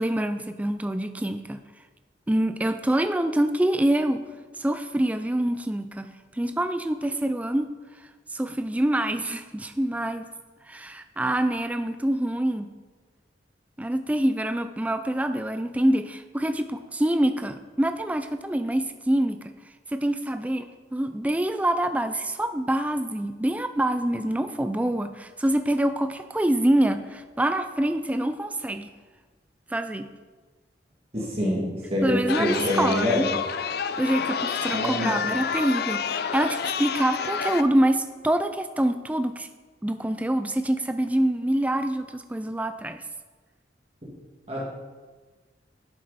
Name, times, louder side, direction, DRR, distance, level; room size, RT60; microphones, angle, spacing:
voice 1, 0.0-1.6 2.3-4.2 4.6-7.7 8.3-10.3 10.6-12.7 13.8-19.5 19.9-28.9 29.7-30.1 32.0-33.3 34.0-39.5 39.8-43.0, right 1 dB, 10° right, 9 dB, 0.3 m, -25 dB
voice 2, 31.1-33.2 34.7-35.3 44.5-44.6, left 1 dB, 35° right, -5 dB, 2.2 m, -26 dB
Chatter, 32.3-37.6, left 6 dB, 60° left, 0.5 m, -29 dB
10.5 x 7.6 x 4.1 m, 1.4 s
head